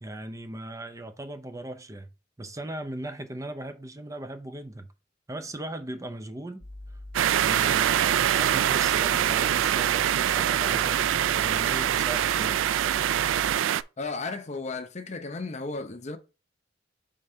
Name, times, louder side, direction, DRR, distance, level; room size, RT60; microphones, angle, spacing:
voice 1, 0.0-2.1 2.4-4.9 5.3-7.0 7.4-12.6, right 1 dB, 15° right, 0.5 m, -38 dB
sound 1, 6.6-13.6, left 1 dB, 15° left, 1.1 m, -42 dB
sound 2, 7.1-13.8, right 10 dB, 85° right, 0.3 m, -24 dB
voice 2, 14.0-16.2, left 3 dB, 35° left, 0.7 m, -34 dB
5.2 x 3.6 x 5.5 m
head